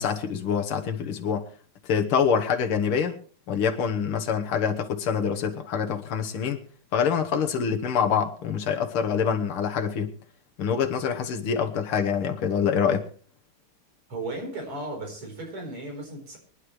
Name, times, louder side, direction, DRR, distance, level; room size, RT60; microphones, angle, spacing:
voice 1, 0.0-1.4 1.8-3.2 3.5-6.6 6.9-10.1 10.6-13.1, left 7 dB, 80° left, 2.1 m, -25 dB
voice 2, 14.1-16.4, right 2 dB, 80° right, 5.2 m, -36 dB
24.0 x 11.5 x 3.2 m
omnidirectional pair, 2.4 m